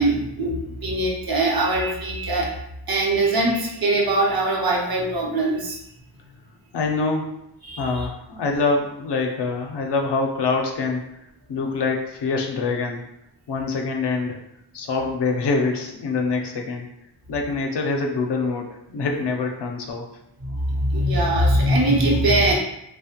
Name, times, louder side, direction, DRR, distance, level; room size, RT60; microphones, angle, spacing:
voice 1, 0.0-2.5 2.9-5.8 7.6-8.1 20.4-22.5, right 1 dB, 60° right, -1 dB, 0.7 m, -21 dB
voice 2, 6.7-7.4 7.8-11.0 11.5-13.0 13.5-14.4 14.7-16.9 17.3-20.0, left 3 dB, 80° left, 2 dB, 0.6 m, -25 dB
2.8 x 2.1 x 2.8 m, 0.81 s
wide cardioid pair, 75°, 41 cm